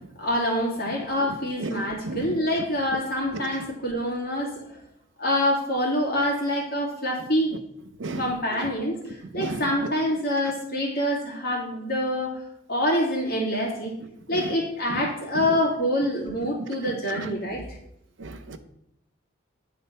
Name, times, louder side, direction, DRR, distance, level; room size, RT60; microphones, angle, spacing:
voice 1, 0.2-4.8 5.2-7.6 8.2-12.4 12.7-13.9 14.3-17.7, left 1 dB, 50° left, 2.3 m, -26 dB
voice 2, 18.2-18.6, right 2 dB, 70° right, 0.7 m, -32 dB
9.0 x 4.1 x 5.5 m
head